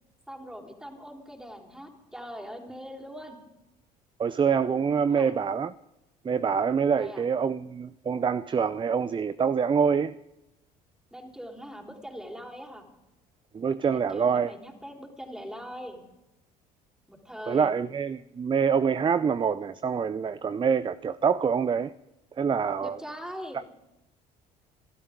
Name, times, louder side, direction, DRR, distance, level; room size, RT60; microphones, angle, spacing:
voice 1, 0.3-3.4 5.1-5.3 7.0-7.2 11.1-12.9 13.9-16.1 17.1-17.7 22.8-23.6, equal, 5° right, 4.0 m, -41 dB
voice 2, 4.2-5.7 6.2-10.2 13.5-14.5 17.5-21.9 22.4-23.0, right 6 dB, 25° right, 0.5 m, -25 dB
25.5 x 12.5 x 3.7 m
hypercardioid pair, 65°, 19 cm